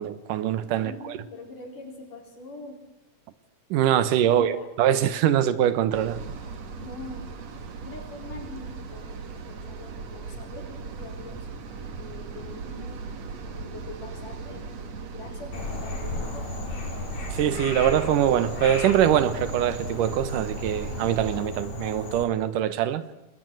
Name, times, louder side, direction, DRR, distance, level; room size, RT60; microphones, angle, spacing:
voice 1, 0.0-1.2 3.7-6.2 17.3-23.0, right 10 dB, 85° right, 2.8 m, -23 dB
voice 2, 0.7-2.8 4.2-4.7 6.8-7.3 7.8-11.5 12.0-13.0 13.4-16.7, left 3 dB, 80° left, 6.3 m, -43 dB
sound 1, 5.9-21.4, right 4 dB, 55° right, 3.1 m, -38 dB
Frog, 15.5-22.2, left 2 dB, 60° left, 5.2 m, -35 dB
28.0 x 22.0 x 7.9 m
omnidirectional pair, 3.6 m